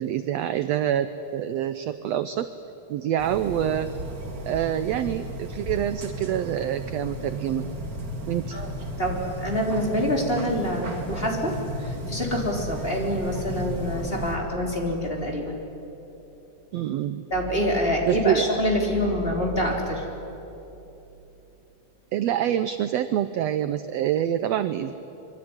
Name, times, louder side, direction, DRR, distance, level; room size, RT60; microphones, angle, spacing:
voice 1, 0.0-2.5 2.9-3.9 4.5-7.7 8.3-8.9 16.7-17.2 18.1-18.5 22.1-24.9, right 11 dB, 75° right, 11 dB, 1.6 m, -26 dB
sound 1, 3.2-14.4, right 1 dB, 30° right, 2.2 m, -34 dB
voice 2, 9.0-11.5 11.8-15.5 17.3-20.1, equal, 15° left, 0 dB, 3.7 m, -26 dB
26.0 x 23.5 x 9.7 m, 3.0 s
omnidirectional pair, 3.7 m